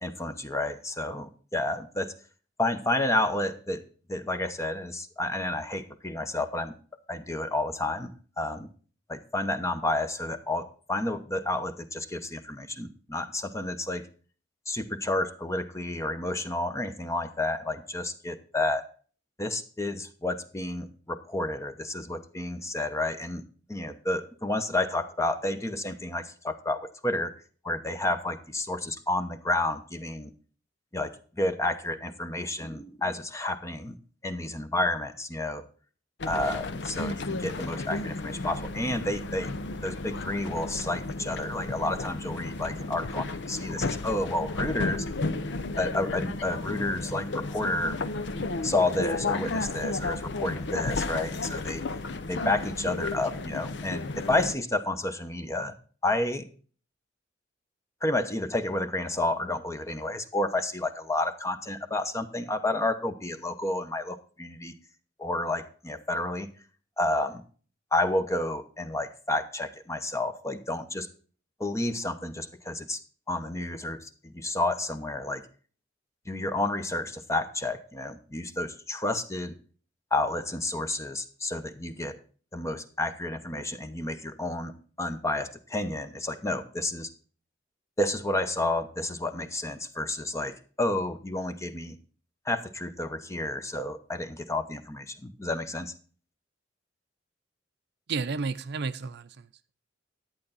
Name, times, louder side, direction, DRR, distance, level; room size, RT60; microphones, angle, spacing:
voice 1, 0.0-2.1 2.6-3.8 4.1-6.7 7.1-8.1 8.4-8.7 9.1-14.1 14.7-18.8 19.4-23.4 23.7-27.3 27.6-30.3 30.9-34.0 34.2-35.6 36.3-39.5 39.8-45.1 45.8-48.0 48.6-51.8 52.3-55.7 56.0-56.5 58.0-64.7 65.2-66.5 67.0-67.4 67.9-71.1 71.6-73.0 73.3-75.5 76.3-79.5 80.1-82.2 82.5-87.1 88.0-92.0 92.5-95.9, left 2 dB, 15° left, 0.8 m, -30 dB
sound 1, 36.2-54.5, left 3 dB, 65° left, 0.7 m, -33 dB
voice 2, 98.1-99.7, right 4 dB, 60° right, 0.5 m, -32 dB
11.0 x 8.8 x 4.0 m
head